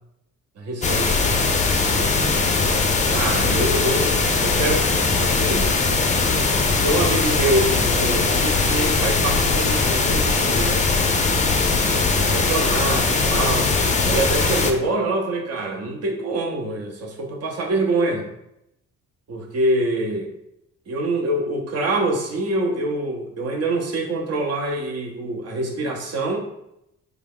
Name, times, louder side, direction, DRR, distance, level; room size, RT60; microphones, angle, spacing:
voice 1, 0.6-1.2 3.1-4.9 5.2-5.7 6.8-10.8 11.8-12.0 12.3-13.7 14.0-18.3 19.3-20.3 20.9-26.4, right 2 dB, 55° right, 1 dB, 0.8 m, -25 dB
sound 1, 0.8-14.7, left 4 dB, 25° left, 0.5 m, -20 dB
3.5 x 2.4 x 3.5 m, 0.82 s
cardioid pair, 90°, 30 cm